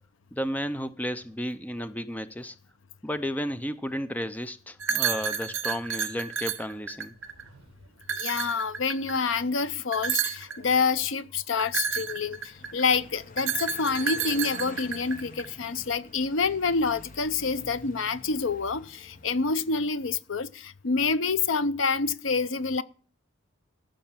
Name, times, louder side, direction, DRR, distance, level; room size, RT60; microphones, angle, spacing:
voice 1, 0.3-2.6 3.0-7.1, equal, 10° left, 0.5 m, -33 dB
sound 1, 4.8-7.5 8.0-9.3 9.9-10.6 11.6-12.8 13.4-15.5, right 7 dB, 65° right, 0.9 m, -30 dB
sound 2, 7.0-8.2, right 2 dB, 30° right, 3.9 m, -58 dB
voice 2, 8.1-22.8, left 4 dB, 65° left, 0.6 m, -27 dB
Car passing by, 11.7-20.2, left 2 dB, 40° left, 1.0 m, -48 dB
15.0 x 6.4 x 7.3 m
head